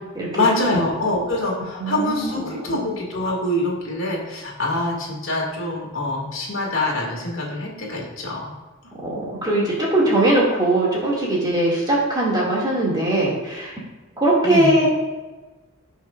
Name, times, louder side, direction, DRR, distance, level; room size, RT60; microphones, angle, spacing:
voice 1, 0.3-8.5 14.4-14.7, left 2 dB, 65° left, -2 dB, 2.3 m, -25 dB
voice 2, 1.8-2.8 9.0-13.7 14.2-14.9, right 1 dB, 20° right, -5 dB, 2.2 m, -20 dB
16.5 x 5.6 x 2.5 m, 1.2 s
head